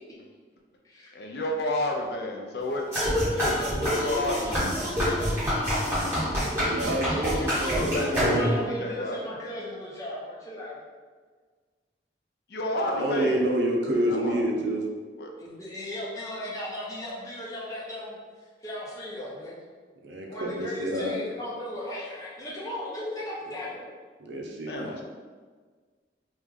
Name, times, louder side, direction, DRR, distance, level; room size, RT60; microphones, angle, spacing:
voice 1, 1.1-4.7 6.9-9.2 12.5-13.4 13.9-14.4 15.2-15.3 24.7-25.0, left 1 dB, 65° left, 1 dB, 0.5 m, -32 dB
sound 1, 2.9-8.7, equal, 15° right, 1.2 m, -26 dB
voice 2, 6.6-8.5 12.9-14.8 20.0-21.1 24.2-25.0, right 1 dB, 90° right, 0 dB, 0.5 m, -28 dB
voice 3, 8.1-10.8 15.4-18.2 18.6-19.6 20.3-23.9, left 1 dB, 20° left, -6 dB, 0.7 m, -36 dB
3.2 x 2.4 x 3.5 m, 1.5 s
head